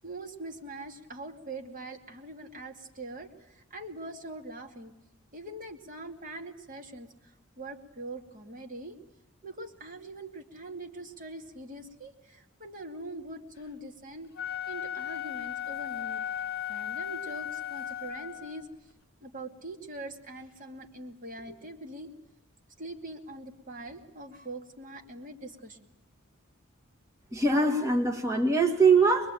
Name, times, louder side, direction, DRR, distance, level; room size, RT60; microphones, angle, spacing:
voice 1, 0.0-4.9 5.3-9.0 9.4-14.3 14.7-16.2 16.7-18.7 19.2-22.1 22.8-25.8, right 2 dB, 40° right, 4 dB, 2.4 m, -43 dB
Wind instrument woodwind instrument, 14.2-18.7, left 10 dB, 45° left, 1.6 m, -36 dB
voice 2, 27.3-29.3, right 4 dB, 15° right, 0 dB, 2.0 m, -22 dB
23.5 x 23.0 x 9.1 m, 0.84 s
head